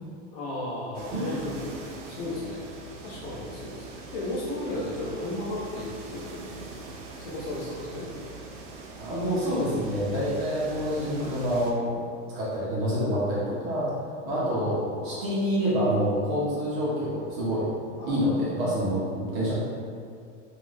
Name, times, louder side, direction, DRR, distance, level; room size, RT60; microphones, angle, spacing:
voice 1, 0.3-1.7 2.1-2.6 3.0-6.9 7.2-8.1 14.2-15.2 18.0-18.8, left 1 dB, 50° left, -5 dB, 0.7 m, -35 dB
sound 1, 0.9-11.7, right 3 dB, 75° right, 0.6 m, -43 dB
voice 2, 1.1-1.4 9.0-12.0 12.3-13.9 14.2-14.8 15.0-17.7 18.1-19.5, equal, 30° right, -8 dB, 0.4 m, -27 dB
2.3 x 2.1 x 3.1 m, 2.2 s
supercardioid pair, 170°, 36 cm